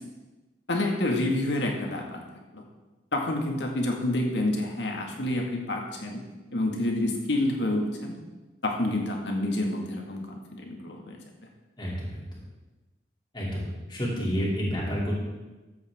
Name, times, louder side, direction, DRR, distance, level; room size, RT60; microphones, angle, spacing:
voice 1, 0.7-2.2 2.5-2.6 3.1-6.2 6.5-8.1 8.6-11.2, left 1 dB, 85° left, 1 dB, 1.9 m, -28 dB
voice 2, 11.8-12.2 13.3-13.6 13.9-15.1, equal, 25° left, -6 dB, 3.0 m, -29 dB
13.5 x 8.3 x 3.6 m, 1.2 s
head